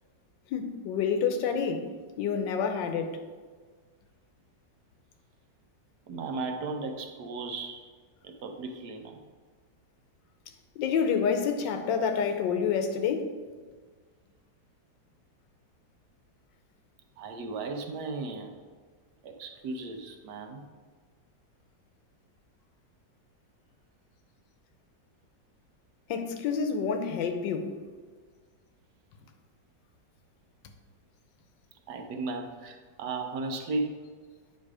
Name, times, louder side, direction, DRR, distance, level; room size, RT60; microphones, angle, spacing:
voice 1, 0.5-3.2 10.8-13.3 26.1-27.7, left 6 dB, 90° left, 1.4 m, -28 dB
voice 2, 6.1-7.8 8.2-9.2 17.2-18.6 19.2-20.6 31.9-34.0, right 3 dB, 70° right, 1.3 m, -35 dB
9.2 x 4.0 x 4.8 m
omnidirectional pair, 1.9 m